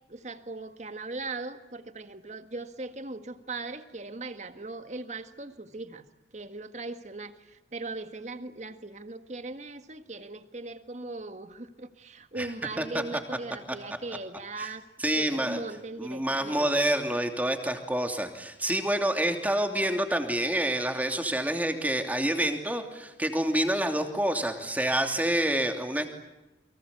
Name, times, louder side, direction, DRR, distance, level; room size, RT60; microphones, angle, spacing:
voice 1, 0.1-6.0 6.3-14.9 15.2-16.7, right 3 dB, 40° right, 10 dB, 1.7 m, -39 dB
voice 2, 15.0-15.6 16.0-26.1, right 1 dB, 10° right, 5 dB, 2.9 m, -27 dB
29.5 x 24.0 x 8.5 m, 0.99 s
head